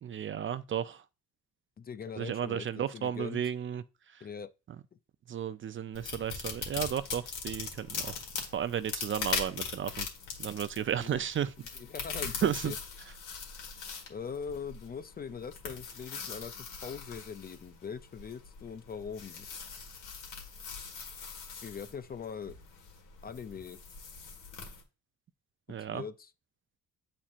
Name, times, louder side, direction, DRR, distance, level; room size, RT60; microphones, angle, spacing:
voice 1, 0.0-1.0 2.2-3.8 5.3-8.2 8.5-10.1 10.4-11.5 12.4-12.7 25.7-26.0, right 9 dB, 40° right, 0.5 m, -33 dB
voice 2, 1.8-3.5 4.2-4.5 10.9-11.2 11.8-12.8 14.1-16.5 16.8-19.5 21.6-22.6 23.2-23.8 25.9-26.3, left 6 dB, 30° left, 0.5 m, -41 dB
sound 1, 5.9-24.8, left 6 dB, 85° left, 1.8 m, -41 dB
8.4 x 4.4 x 2.5 m
cardioid pair, 90°, 30 cm